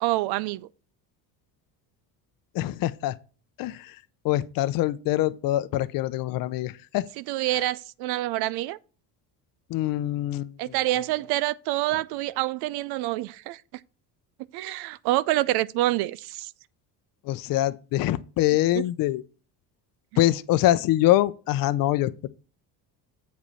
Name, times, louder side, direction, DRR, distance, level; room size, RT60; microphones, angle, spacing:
voice 1, 0.0-0.7 7.2-8.8 10.6-13.6 14.5-16.5 20.1-20.2, right 16 dB, 75° right, 0.5 m, -27 dB
voice 2, 2.5-3.2 3.6-4.0 4.2-7.1 9.7-10.7 17.2-19.2 20.2-22.3, left 15 dB, 60° left, 0.6 m, -24 dB
8.1 x 5.1 x 5.5 m
cardioid pair, 130°, 39 cm